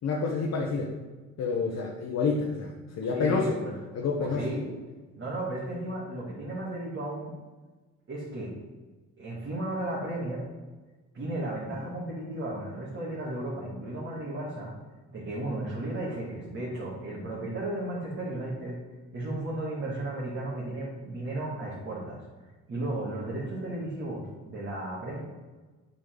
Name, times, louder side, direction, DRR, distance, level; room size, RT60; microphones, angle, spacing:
voice 1, 0.0-0.9 1.4-3.6 3.9-4.5, left 4 dB, 60° left, -1 dB, 1.0 m, -28 dB
voice 2, 3.0-3.8 4.2-4.7 5.2-7.3 8.1-8.5 9.2-10.4 11.1-14.7 15.1-18.8 19.1-22.2 22.7-25.2, right 1 dB, 45° right, -7 dB, 2.4 m, -34 dB
8.0 x 5.3 x 3.9 m, 1.3 s
cardioid pair, 90°, 30 cm